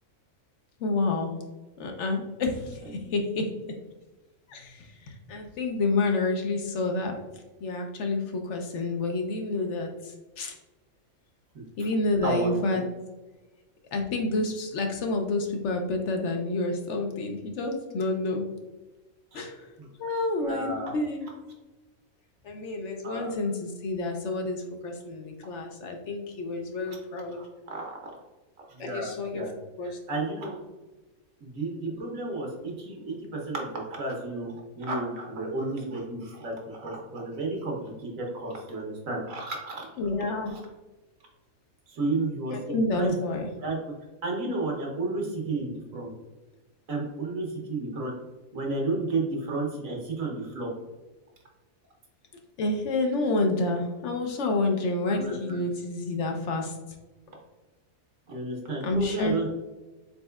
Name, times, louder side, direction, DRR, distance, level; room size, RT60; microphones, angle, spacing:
voice 1, 0.8-1.3 1.8-3.5 4.5-7.2 7.6-10.6 11.8-12.8 13.9-18.5 19.3-19.7 20.0-21.3 22.4-27.4 28.8-29.4 29.8-30.0 40.0-40.5 42.5-43.5 52.6-56.8 58.8-59.3, left 2 dB, 65° left, 3 dB, 0.8 m, -29 dB
voice 2, 20.4-21.0 23.0-23.3 26.8-27.0 27.3-28.0 28.7-29.5 29.8-30.6 31.4-37.7 38.2-39.9 40.5-40.6 41.9-43.1 43.6-43.8 44.2-46.1 46.9-48.1 48.5-50.7 55.1-55.6 58.3-59.5, right 2 dB, 70° right, -1 dB, 1.5 m, -32 dB
4.2 x 4.1 x 2.3 m, 1.1 s
omnidirectional pair, 1.5 m